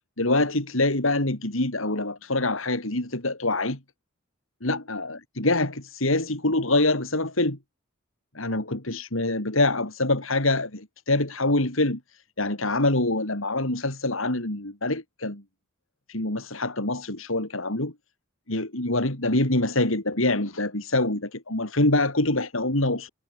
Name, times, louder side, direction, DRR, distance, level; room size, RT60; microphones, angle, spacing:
voice 1, 0.2-3.8 4.6-7.6 8.3-15.4 16.1-17.9 18.5-23.1, left 2 dB, 70° left, 4.3 m, -25 dB
head